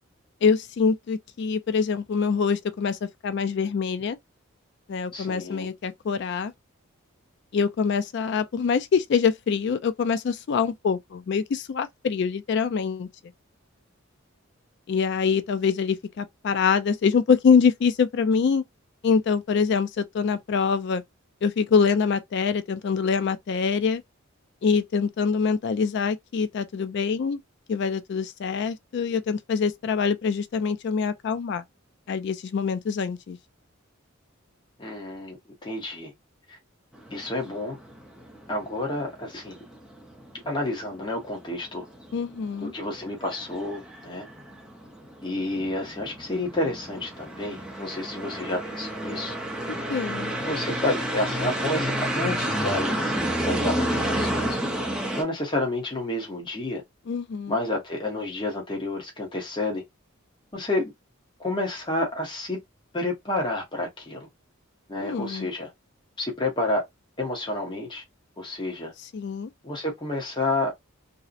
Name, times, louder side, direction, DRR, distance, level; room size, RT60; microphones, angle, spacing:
voice 1, 0.4-4.2 4.9-6.5 7.5-13.1 14.9-18.6 19.0-21.0 21.4-24.0 24.6-27.4 27.7-31.6 32.1-33.4 42.1-42.7 49.9-50.3 57.1-57.6 65.0-65.5 69.0-69.5, left 5 dB, 55° left, 0.3 m, -24 dB
voice 2, 5.1-5.7 34.8-35.4 35.6-36.1 36.5-36.6 37.1-37.8 38.5-39.6 40.5-41.9 42.6-44.2 45.2-49.4 50.4-53.1 53.4-54.6 55.1-56.8 57.5-59.8 60.5-60.9 61.4-62.6 62.9-64.3 64.9-65.7 66.2-66.8 67.2-68.0 68.4-68.9 69.6-70.9, left 2 dB, 25° left, 0.8 m, -30 dB
sound 1, 37.0-55.2, right 1 dB, 5° right, 0.5 m, -30 dB
2.6 x 2.0 x 2.4 m
head